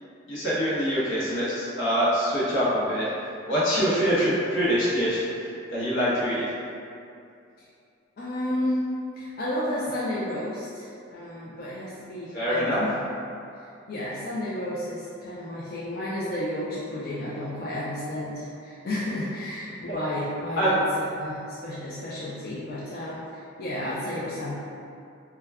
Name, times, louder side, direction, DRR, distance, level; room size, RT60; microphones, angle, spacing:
voice 1, 0.3-3.1 3.5-6.4 12.3-12.9 20.6-20.7, equal, 80° left, -9 dB, 0.9 m, -24 dB
voice 2, 8.2-8.8 9.2-12.9 13.9-24.5, left 1 dB, 50° left, -8 dB, 0.3 m, -32 dB
2.2 x 2.1 x 3.4 m, 2.5 s
head